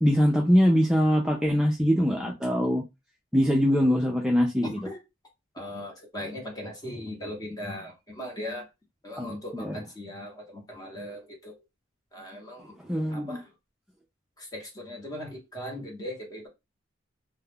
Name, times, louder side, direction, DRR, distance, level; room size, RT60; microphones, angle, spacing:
voice 1, 0.0-2.9 3.3-4.8 9.2-9.8 12.8-13.4, equal, 5° right, 0.3 m, -23 dB
voice 2, 5.5-8.6 9.0-11.5 12.1-12.7 13.1-13.4 14.4-16.5, left 1 dB, 20° left, 0.9 m, -38 dB
2.3 x 2.0 x 3.4 m
head